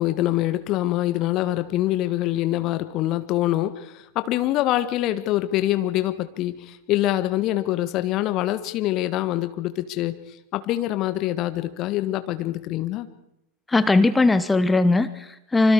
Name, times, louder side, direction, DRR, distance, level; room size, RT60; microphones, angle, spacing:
voice 1, 0.0-10.1 10.5-13.1, left 14 dB, 40° left, 11 dB, 1.6 m, -25 dB
voice 2, 13.7-15.7, left 3 dB, 10° left, 14 dB, 1.0 m, -19 dB
25.5 x 25.5 x 4.8 m, 0.85 s
figure-of-eight pair, 90°, 0 cm